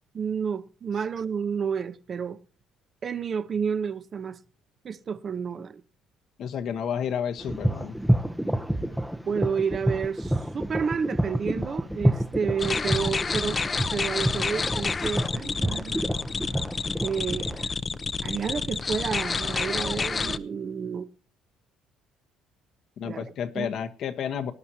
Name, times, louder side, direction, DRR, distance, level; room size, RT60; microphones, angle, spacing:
voice 1, 0.1-2.4 3.0-4.4 4.8-5.8 9.3-13.6 13.9-16.0 17.0-17.8 18.2-21.1 23.0-23.2 23.5-23.7, right 6 dB, 40° right, 0.9 m, -30 dB
voice 2, 6.4-8.0 23.0-24.5, left 8 dB, 60° left, 1.3 m, -31 dB
sound 1, 7.4-17.7, right 1 dB, 5° right, 0.8 m, -28 dB
sound 2, 12.6-20.4, left 4 dB, 30° left, 0.7 m, -29 dB
19.0 x 11.0 x 2.9 m
cardioid pair, 95°, 0 cm